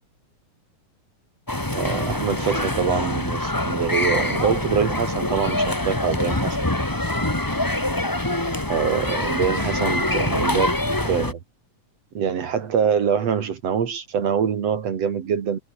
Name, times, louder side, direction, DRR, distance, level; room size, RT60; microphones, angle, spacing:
sound 1, 1.5-11.3, left 1 dB, 10° left, 1.3 m, -24 dB
voice 1, 1.7-6.5 8.7-10.7 11.0-11.4 12.1-15.6, right 7 dB, 55° right, 2.9 m, -24 dB
omnidirectional pair, 3.5 m